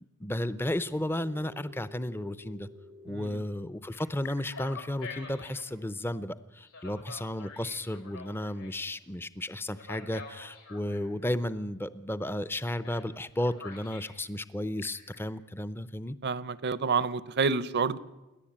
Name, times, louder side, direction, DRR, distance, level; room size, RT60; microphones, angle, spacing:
voice 1, 0.0-2.7 3.0-16.2, left 1 dB, 10° left, 15 dB, 0.6 m, -33 dB
Telephone, 1.1-3.4 3.9-5.7 6.6-8.9 9.7-11.1 12.8-13.1 13.4-14.2 14.6-15.1, left 4 dB, 80° left, 5.8 m, -47 dB
voice 2, 3.1-3.4 16.2-18.0, right 5 dB, 50° right, 17 dB, 0.7 m, -28 dB
28.5 x 11.5 x 8.7 m, 1.1 s
head